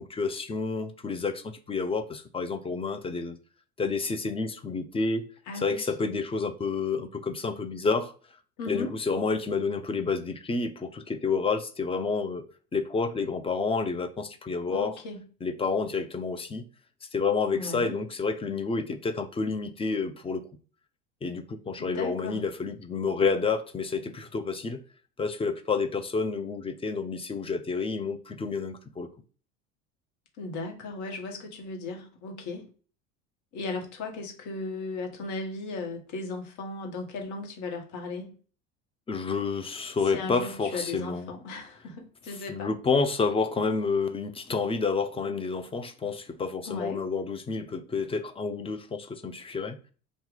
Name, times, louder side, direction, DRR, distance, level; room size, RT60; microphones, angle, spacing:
voice 1, 0.0-3.4 3.8-5.3 5.6-8.1 8.7-12.4 12.7-15.0 15.4-16.6 17.1-20.5 21.2-24.8 25.2-29.1 39.1-41.3 42.3-49.8, left 4 dB, 15° left, 0.5 m, -29 dB
voice 2, 5.5-6.2 8.6-9.0 14.7-15.2 17.5-17.9 21.8-22.4 30.4-32.6 33.5-38.3 40.1-42.7 46.7-47.0, left 3 dB, 50° left, 1.3 m, -36 dB
2.8 x 2.5 x 3.9 m
hypercardioid pair, 75°, 38 cm